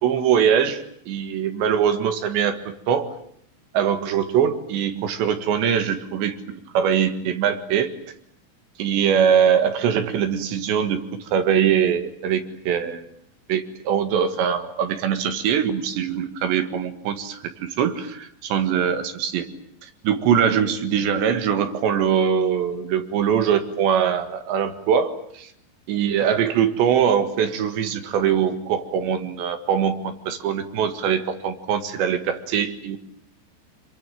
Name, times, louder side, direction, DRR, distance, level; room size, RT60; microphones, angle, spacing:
voice 1, 0.0-3.1 3.7-6.4 6.8-7.9 8.8-13.0 13.5-19.5 19.8-25.5 25.9-33.0, right 8 dB, 70° right, 8 dB, 3.9 m, -22 dB
27.0 x 24.0 x 9.2 m, 0.67 s
omnidirectional pair, 5.5 m